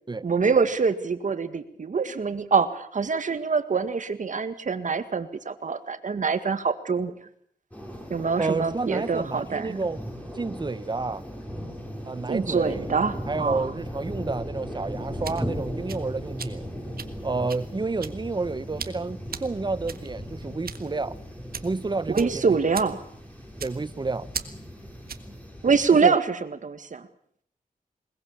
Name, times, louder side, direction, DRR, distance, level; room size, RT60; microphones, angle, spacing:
voice 1, 0.2-7.1 8.1-9.8 12.3-13.7 22.1-23.0 25.6-27.1, right 5 dB, 60° right, 1.9 m, -25 dB
sound 1, 7.7-25.9, equal, 10° left, 6.4 m, -37 dB
voice 2, 8.4-10.0 10.3-11.2 12.1-12.8 13.3-16.6 17.2-21.2 21.6-22.6 23.6-24.3 26.0-26.1, right 3 dB, 30° right, 0.9 m, -30 dB
sound 2, 14.9-25.4, right 7 dB, 90° right, 1.6 m, -40 dB
21.5 x 20.5 x 7.2 m
wide cardioid pair, 95°, 15 cm